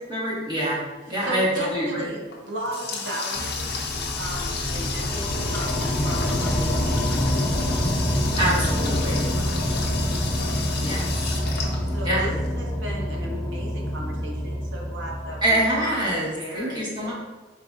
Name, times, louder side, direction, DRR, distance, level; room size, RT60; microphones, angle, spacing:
voice 1, 0.1-0.8 1.1-2.1 8.4-9.2 10.8-11.0 12.0-12.2 15.4-17.1, right 1 dB, 25° right, -8 dB, 1.3 m, -25 dB
voice 2, 1.1-3.7 4.2-7.7 9.6-9.7 11.9-16.0 16.2-17.1, right 1 dB, 75° right, -1 dB, 0.9 m, -35 dB
Water tap faucet, 2.3-12.5, left 5 dB, 60° left, 0.6 m, -32 dB
sound 1, 3.3-15.9, equal, ahead, 0.7 m, -26 dB
4.1 x 3.9 x 2.4 m, 1.3 s
head